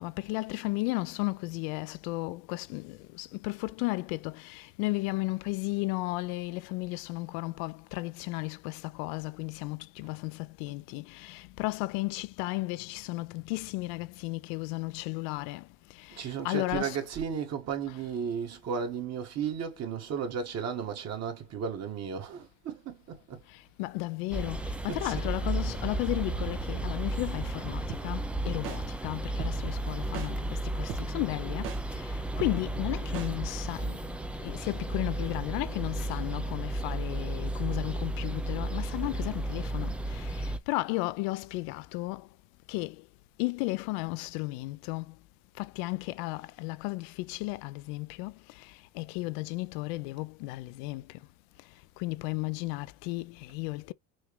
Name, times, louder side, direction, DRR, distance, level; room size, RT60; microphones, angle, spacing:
voice 1, 0.0-15.6 16.0-17.0 17.9-18.0 23.8-31.7 32.0-34.0 34.4-42.3 42.7-43.0 43.4-45.1 45.6-48.3 49.0-51.0 52.0-53.9, left 22 dB, 80° left, 0.5 m, -34 dB
voice 2, 16.1-23.4 24.9-25.2, right 7 dB, 45° right, 1.7 m, -34 dB
sound 1, 24.3-40.6, right 2 dB, 5° right, 0.3 m, -33 dB
sound 2, 27.9-28.0 28.6-28.8 29.4-29.5 30.1-30.3 30.9-31.0 31.6-31.8 32.4-32.5 33.1-33.3, right 6 dB, 80° right, 1.8 m, -37 dB
6.3 x 2.4 x 3.1 m
cardioid pair, 135°, 37 cm